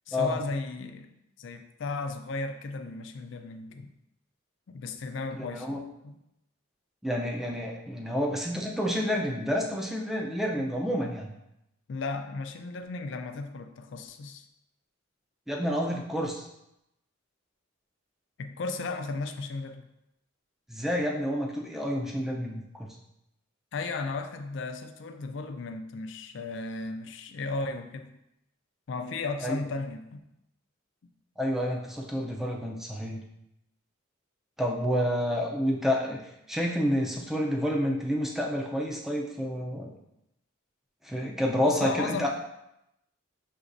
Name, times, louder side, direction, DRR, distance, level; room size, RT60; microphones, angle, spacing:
voice 1, 0.1-1.1 1.4-3.9 4.7-6.1 11.9-14.4 18.4-19.9 23.7-28.2 28.9-30.2 41.6-42.3, left 3 dB, 60° left, 7 dB, 0.4 m, -35 dB
voice 2, 5.3-5.8 7.0-11.3 15.5-16.5 20.7-22.9 29.4-29.6 31.4-33.2 34.6-36.2 36.5-39.9 41.0-42.3, equal, ahead, -1 dB, 0.4 m, -29 dB
6.1 x 3.0 x 2.6 m, 0.86 s
head